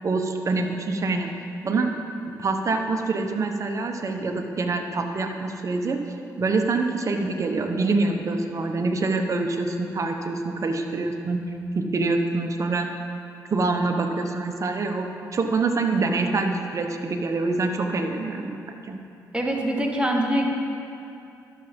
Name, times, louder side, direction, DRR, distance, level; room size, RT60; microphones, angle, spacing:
voice 1, 0.0-1.3 1.6-1.9 2.4-6.0 6.4-11.4 11.7-12.9 13.5-19.0, right 3 dB, 45° right, 4 dB, 1.1 m, -25 dB
voice 2, 19.3-20.5, right 1 dB, 15° right, 0 dB, 1.6 m, -24 dB
11.5 x 7.0 x 5.2 m, 2.7 s
cardioid pair, 70°, 7 cm